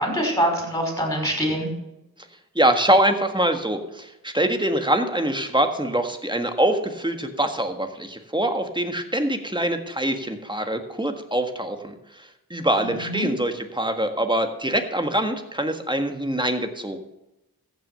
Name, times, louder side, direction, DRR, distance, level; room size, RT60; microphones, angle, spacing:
voice 1, 0.0-1.7 12.8-13.3, equal, 10° left, 0 dB, 5.3 m, -24 dB
voice 2, 2.5-17.0, right 1 dB, 15° right, 6 dB, 1.6 m, -24 dB
15.0 x 6.2 x 6.8 m, 0.92 s
wide cardioid pair, 45°, 37 cm